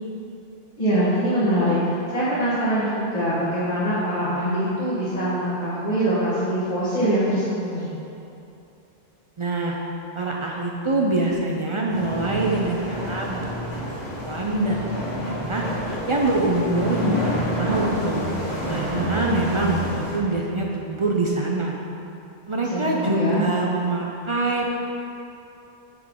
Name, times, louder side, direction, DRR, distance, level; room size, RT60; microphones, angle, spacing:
voice 1, 0.8-7.9 22.6-23.4, equal, 40° left, -12 dB, 1.5 m, -23 dB
voice 2, 9.4-9.8 10.1-14.9 15.1-15.6 16.1-18.2 18.7-21.8 22.5-24.7, right 2 dB, 40° right, -2 dB, 0.5 m, -25 dB
sound 1, 11.9-20.2, equal, 80° left, 2.1 m, -28 dB
10.0 x 3.8 x 3.7 m, 2.8 s
omnidirectional pair, 1.1 m